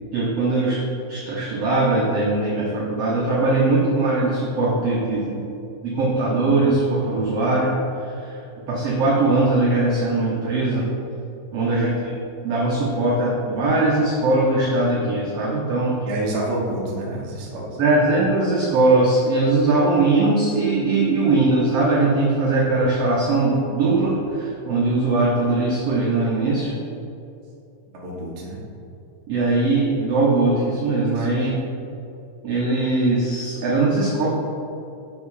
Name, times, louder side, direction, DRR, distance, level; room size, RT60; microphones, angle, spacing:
voice 1, 0.1-0.8 1.1-5.5 5.8-8.4 8.7-10.9 11.5-12.1 12.4-16.0 17.8-26.7 29.3-31.5 32.4-34.3, right 2 dB, 75° right, -4 dB, 1.4 m, -20 dB
voice 2, 16.0-17.8 27.9-28.6 31.2-31.3, right 1 dB, 55° right, -4 dB, 1.1 m, -28 dB
7.1 x 5.4 x 4.8 m, 2.7 s
omnidirectional pair, 4.0 m